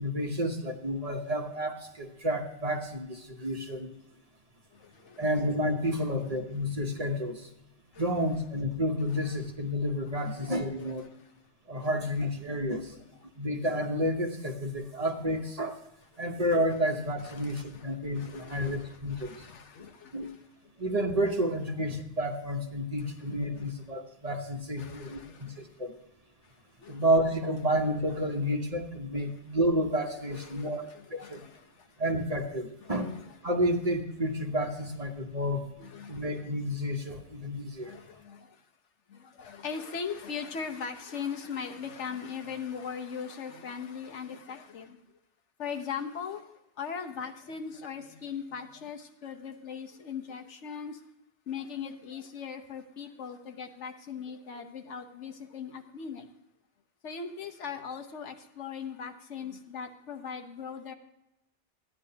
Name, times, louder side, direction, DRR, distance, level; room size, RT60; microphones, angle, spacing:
voice 1, 0.0-3.9 5.2-7.5 8.0-11.1 11.7-13.0 13.4-15.8 16.2-19.5 20.1-20.3 20.8-25.9 26.9-31.4 32.0-35.7 36.1-37.9, equal, 35° right, 3 dB, 1.0 m, -30 dB
voice 2, 4.7-5.2 5.8-6.1 7.9-8.0 9.2-9.3 10.1-10.9 11.7-11.9 17.2-20.7 23.0-23.7 24.8-25.7 26.4-26.5 26.8-27.1 30.3-31.9 32.8-33.4 35.8-36.5 37.8-38.6 39.1-45.0 45.6-51.0 51.5-56.3 57.0-60.9, left 6 dB, 80° left, 6 dB, 1.2 m, -40 dB
14.0 x 9.9 x 2.8 m, 0.88 s
omnidirectional pair, 1.2 m